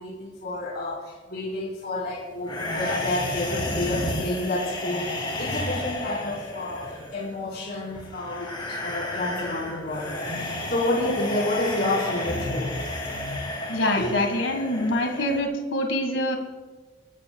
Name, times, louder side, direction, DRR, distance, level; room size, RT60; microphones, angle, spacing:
voice 1, 0.0-12.8 14.0-14.2, left 2 dB, 55° left, -6 dB, 4.3 m, -30 dB
sound 1, 2.4-15.4, left 1 dB, 25° left, 3.3 m, -32 dB
voice 2, 13.7-16.4, left 1 dB, 85° left, 4 dB, 1.7 m, -25 dB
27.0 x 13.5 x 2.3 m, 1.3 s
head